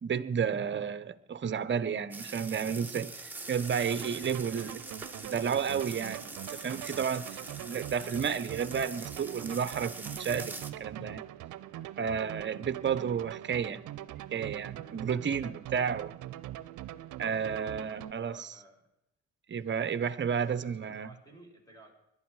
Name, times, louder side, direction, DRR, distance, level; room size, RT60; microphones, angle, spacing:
voice 1, 0.0-4.8 5.2-7.3 7.6-11.2 12.0-13.8 14.3-16.2 17.2-18.5 19.5-21.1, right 7 dB, 40° right, 0.9 m, -32 dB
sound 1, 2.1-10.7, right 2 dB, 5° right, 1.6 m, -44 dB
sound 2, 3.9-18.1, right 13 dB, 80° right, 0.7 m, -43 dB
voice 2, 4.0-4.6 7.2-7.5 10.5-10.7 14.2-14.4 14.8-15.8 17.6-18.9 20.2-21.9, right 1 dB, 10° left, 5.0 m, -57 dB
21.5 x 11.5 x 4.8 m
cardioid pair, 90°, 30 cm